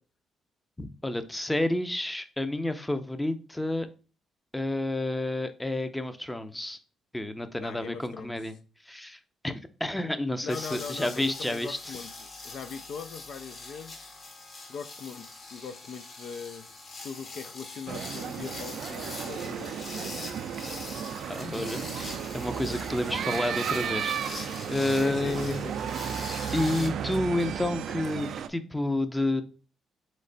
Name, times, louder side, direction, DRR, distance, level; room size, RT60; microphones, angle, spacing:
voice 1, 0.8-3.9 4.5-6.8 7.1-8.5 8.9-9.2 9.4-11.8 21.3-25.6 26.5-29.4, left 1 dB, 10° left, 0.5 m, -30 dB
voice 2, 7.6-8.4 10.4-14.1 14.7-16.7 17.0-20.2 21.6-22.1 23.0-23.1 25.0-25.9, left 6 dB, 65° left, 0.4 m, -41 dB
sound 1, 10.5-26.9, left 3 dB, 45° left, 1.3 m, -43 dB
sound 2, 17.9-28.5, right 8 dB, 70° right, 0.3 m, -34 dB
4.0 x 3.2 x 3.9 m
cardioid pair, 90°, 0 cm